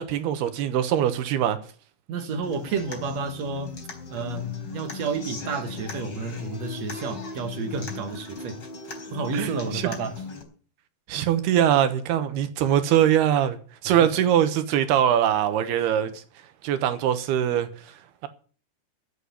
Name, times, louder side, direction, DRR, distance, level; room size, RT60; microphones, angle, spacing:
voice 1, 0.0-1.6 9.3-9.9 11.1-13.6 13.8-16.2 16.6-17.7, right 10 dB, 75° right, 3.1 m, -22 dB
voice 2, 2.1-3.8 4.1-8.6 9.1-10.2 13.9-14.0, right 4 dB, 55° right, 2.1 m, -31 dB
Human voice / Acoustic guitar, 2.4-10.4, left 3 dB, 30° left, 4.6 m, -38 dB
12.5 x 8.2 x 9.8 m
omnidirectional pair, 4.7 m